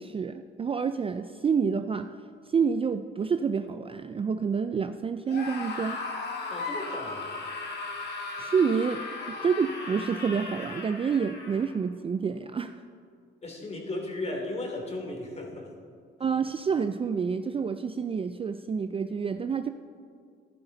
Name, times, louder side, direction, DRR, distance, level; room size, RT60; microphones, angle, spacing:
voice 1, 0.0-2.1 2.5-6.0 8.4-12.8 16.2-19.7, right 6 dB, 30° right, 10 dB, 0.4 m, -28 dB
Screaming, 5.3-11.7, left 3 dB, 55° left, 2.0 m, -36 dB
voice 2, 6.5-7.2 13.4-15.7, left 2 dB, 35° left, 1 dB, 2.8 m, -35 dB
14.0 x 11.0 x 4.0 m, 2.2 s
cardioid pair, 90°, 20 cm